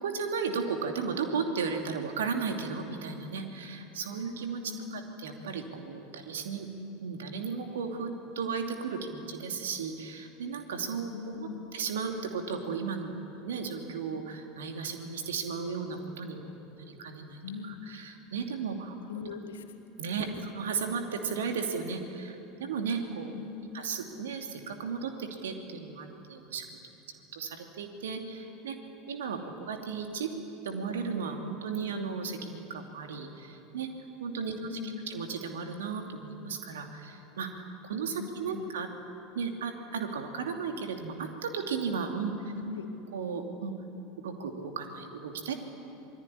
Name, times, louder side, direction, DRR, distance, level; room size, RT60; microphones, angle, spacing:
voice 1, 0.0-4.6 4.9-6.7 7.0-19.0 20.0-20.3 20.5-23.3 23.7-26.7 27.3-28.8 29.1-30.3 30.6-33.9 34.2-34.5 34.8-38.9 39.3-42.5 43.1-43.7 44.2-45.5, right 5 dB, 65° right, 4 dB, 2.8 m, -35 dB
voice 2, 4.7-5.0 11.1-11.7 17.4-17.8 19.1-19.6 20.2-20.3 23.3-23.7 34.5-35.1 38.2-38.7 42.5-42.9, left 7 dB, 70° left, 6 dB, 2.3 m, -40 dB
27.0 x 20.5 x 10.0 m, 2.9 s
figure-of-eight pair, 75°, 0 cm